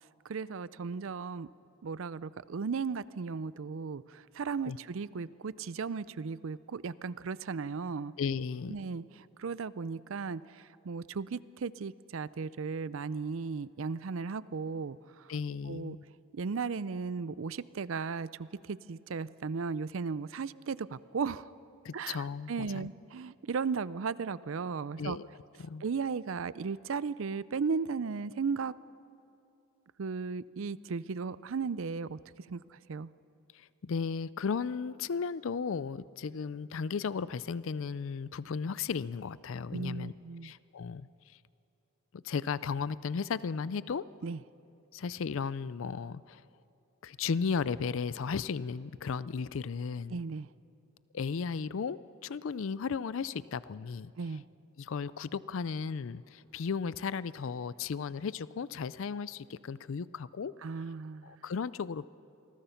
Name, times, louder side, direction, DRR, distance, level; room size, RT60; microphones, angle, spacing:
voice 1, 0.2-1.5 1.8-8.1 8.7-15.3 15.6-16.0 16.3-21.5 21.9-25.2 25.8-28.7 30.0-32.2 32.5-33.1 39.7-40.5 44.2-44.4 50.1-50.5 54.2-54.4 60.6-61.4, right 5 dB, 65° right, 18 dB, 0.5 m, -36 dB
voice 2, 8.2-8.8 15.3-16.0 21.8-22.9 25.0-25.3 25.6-25.8 33.5-40.1 40.4-41.1 42.1-44.0 44.9-46.4 47.0-50.2 51.1-54.1 54.8-60.5 61.2-62.1, left 5 dB, 60° left, 18 dB, 0.4 m, -35 dB
27.0 x 20.5 x 5.8 m, 2.7 s
head